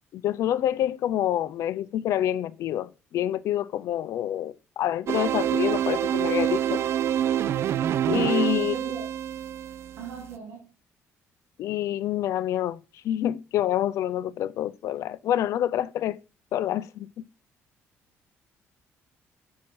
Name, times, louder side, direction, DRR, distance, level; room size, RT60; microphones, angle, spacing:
voice 1, 0.1-6.8 8.1-8.7 11.6-16.2 16.5-17.2, left 11 dB, 70° left, 0.5 m, -27 dB
sound 1, 5.1-10.3, right 10 dB, 55° right, 0.3 m, -26 dB
voice 2, 8.6-9.0 10.0-10.7, right 5 dB, 80° right, 2.5 m, -40 dB
7.2 x 4.7 x 4.5 m
cardioid pair, 130°, 5 cm